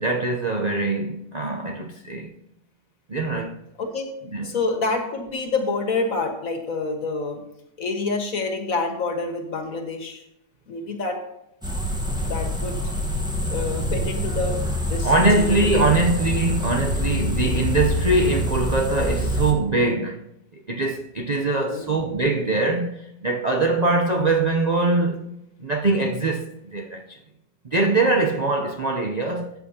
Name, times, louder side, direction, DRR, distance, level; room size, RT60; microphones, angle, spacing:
voice 1, 0.0-2.3 3.1-3.6 4.3-4.6 15.0-20.2 20.7-25.2 25.6-27.2 27.7-29.5, right 2 dB, 85° right, 0.3 m, -22 dB
voice 2, 3.8-4.1 4.4-7.4 7.8-10.2 10.7-11.2 12.2-12.8 13.5-14.6 14.9-16.0 21.7-21.9, left 3 dB, 55° left, 1.8 m, -27 dB
sound 1, 11.6-19.5, equal, 5° right, 0.9 m, -25 dB
14.0 x 8.2 x 2.8 m
omnidirectional pair, 1.9 m